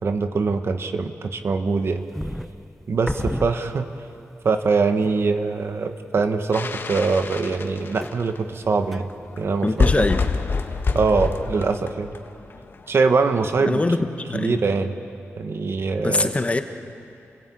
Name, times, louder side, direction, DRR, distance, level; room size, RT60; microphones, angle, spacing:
voice 1, 0.0-2.1 2.9-3.9 4.4-9.1 9.4-10.1 10.9-12.1 12.9-13.8 14.3-15.0 15.4-16.3, right 4 dB, 55° right, 7 dB, 1.3 m, -23 dB
sound 1, 1.7-4.2 4.6-4.7 5.0-5.5 6.1-6.8 7.1-10.9 11.2-11.9, equal, ahead, 0.8 m, -35 dB
sound 2, 6.5-8.4 9.1-9.2 9.4-9.5 9.6-12.7, left 4 dB, 50° left, 1.3 m, -26 dB
voice 2, 9.6-10.2 13.7-14.6 16.0-16.6, left 2 dB, 25° left, 7 dB, 1.3 m, -23 dB
29.5 x 16.0 x 8.6 m, 2.6 s
cardioid pair, 85°, 5 cm